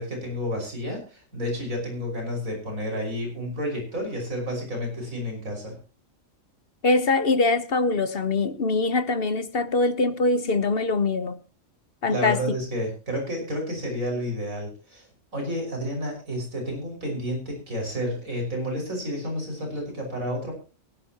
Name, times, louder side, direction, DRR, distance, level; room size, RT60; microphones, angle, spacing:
voice 1, 0.0-5.8 12.1-15.1 15.3-20.5, equal, 90° right, 6.1 m, -30 dB
voice 2, 6.8-11.4 12.0-12.4, left 3 dB, 50° left, 1.2 m, -23 dB
23.0 x 11.0 x 2.9 m
omnidirectional pair, 1.4 m